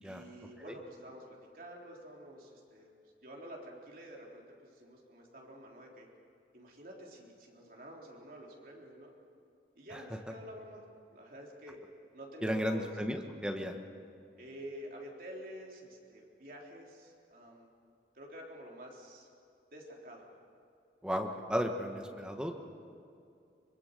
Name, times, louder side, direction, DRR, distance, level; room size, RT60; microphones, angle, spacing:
voice 1, 0.0-2.9 3.2-6.1 6.5-9.1 9.8-10.8 11.1-11.8 12.1-12.9 14.4-17.7 18.1-19.3 19.7-20.3, equal, 55° right, -1 dB, 3.8 m, -49 dB
voice 2, 12.4-13.8 21.0-22.5, equal, 5° right, 3 dB, 1.5 m, -34 dB
24.5 x 22.0 x 6.8 m, 2.4 s
head